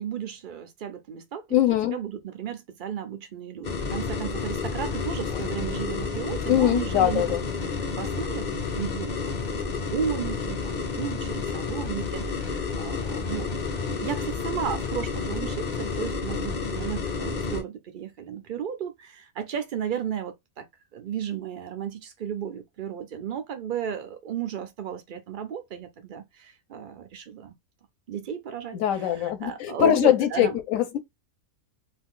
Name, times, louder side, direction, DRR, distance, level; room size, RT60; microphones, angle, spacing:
voice 1, 0.0-1.6 1.9-7.7 8.0-9.4 9.9-13.5 13.9-20.7 20.9-27.5 28.1-30.6, right 8 dB, 80° right, 0.4 m, -34 dB
voice 2, 1.5-2.0 5.3-5.4 6.5-7.4 28.7-31.0, left 11 dB, 65° left, 1.0 m, -22 dB
sound 1, 3.6-17.6, left 5 dB, 40° left, 0.7 m, -30 dB
2.6 x 2.4 x 3.6 m
omnidirectional pair, 1.6 m